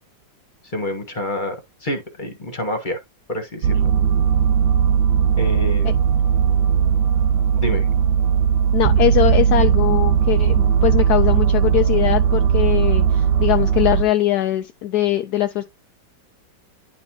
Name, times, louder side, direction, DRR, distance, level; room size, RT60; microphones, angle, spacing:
voice 1, 0.6-1.6 1.8-3.0 3.3-3.9 5.4-5.9 7.5-7.9, left 1 dB, 30° left, 1.3 m, -27 dB
sound 1, 3.6-14.0, right 8 dB, 75° right, 1.4 m, -18 dB
voice 2, 8.7-15.6, left 13 dB, 75° left, 0.9 m, -21 dB
10.5 x 4.2 x 2.9 m
omnidirectional pair, 2.1 m